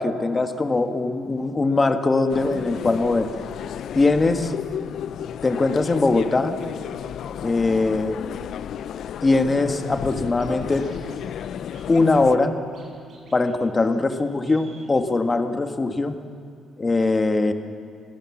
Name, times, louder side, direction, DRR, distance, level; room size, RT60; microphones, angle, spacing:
voice 1, 0.0-3.3 3.9-4.5 5.4-6.6 7.4-8.2 9.2-10.9 11.9-12.5 13.3-16.2 16.8-17.5, left 3 dB, 25° left, 7 dB, 1.7 m, -21 dB
sound 1, 2.3-12.4, left 9 dB, 70° left, 0.5 m, -33 dB
Scratching (performance technique), 10.1-10.2 10.4-11.2 11.4-11.5 11.7-12.8 13.1-13.5 13.7-13.8 14.1-14.2 14.4-14.9, right 4 dB, 55° right, 7.1 m, -50 dB
26.0 x 16.0 x 7.4 m, 2.4 s
cardioid pair, 90°, 0 cm